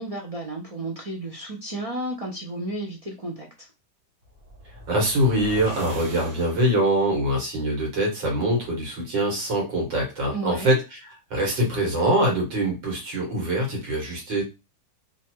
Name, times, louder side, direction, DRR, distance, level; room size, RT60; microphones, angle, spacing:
voice 1, 0.0-3.7 10.3-10.8, right 1 dB, 40° right, 0 dB, 0.5 m, -32 dB
sound 1, 4.2-7.1, right 1 dB, 55° right, 1.8 m, -40 dB
voice 2, 4.9-11.0 11.3-14.4, right 1 dB, 85° right, 0 dB, 2.6 m, -24 dB
4.1 x 2.8 x 4.6 m, 0.27 s
omnidirectional pair, 2.0 m